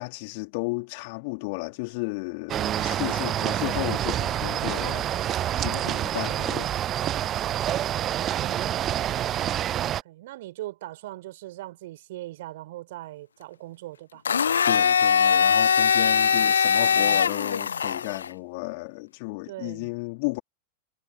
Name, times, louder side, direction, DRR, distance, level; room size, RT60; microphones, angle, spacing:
voice 1, 0.0-5.1 5.6-6.7 14.6-20.4, left 29 dB, 45° left, 2.9 m, -33 dB
sound 1, 2.5-10.0, right 11 dB, 30° right, 0.6 m, -27 dB
voice 2, 5.6-6.0 8.4-8.8 9.3-14.2 16.1-16.5 16.8-17.2 19.5-19.9, right 16 dB, 55° right, 4.1 m, -41 dB
Domestic sounds home sounds, 14.2-18.3, left 7 dB, 70° left, 1.1 m, -21 dB
figure-of-eight pair, 90°, 0 cm